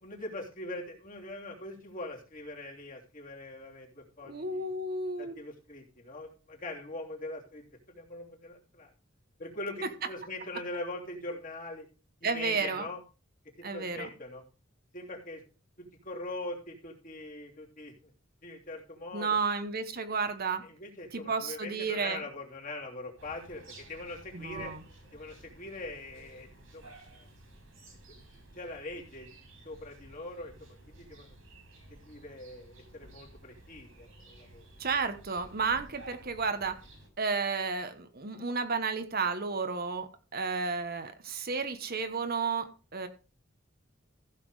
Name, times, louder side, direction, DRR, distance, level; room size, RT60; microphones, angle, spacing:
voice 1, 0.0-4.7 5.2-8.9 9.4-11.8 12.2-13.0 13.6-14.4 14.9-15.4 15.8-18.1 18.4-19.4 20.6-24.7 25.1-27.3 28.5-29.4 29.6-31.4 31.9-34.6, left 2 dB, 40° left, -1 dB, 3.2 m, -42 dB
voice 2, 4.2-5.3 12.2-12.9 13.6-14.1 19.1-20.6 21.1-22.2 24.3-24.8 34.8-36.8 37.2-42.7 42.9-43.1, right 4 dB, 50° right, 8 dB, 1.1 m, -32 dB
sound 1, 23.2-37.1, right 1 dB, 90° right, 6.1 m, -54 dB
15.0 x 6.0 x 4.8 m, 0.34 s
head